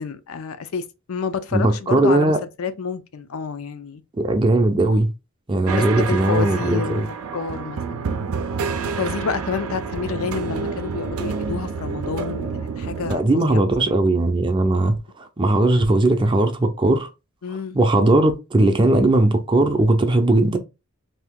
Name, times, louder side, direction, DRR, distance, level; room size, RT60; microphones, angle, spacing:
voice 1, 0.0-4.0 5.7-8.2 8.9-14.0 17.4-17.8, left 6 dB, 75° left, 0.5 m, -29 dB
voice 2, 1.5-2.4 4.2-5.1 5.5-7.1 13.1-17.1 17.7-20.6, right 2 dB, 20° right, 0.4 m, -18 dB
sound 1, 5.7-13.2, right 5 dB, 85° right, 0.5 m, -28 dB
2.8 x 2.7 x 3.5 m
head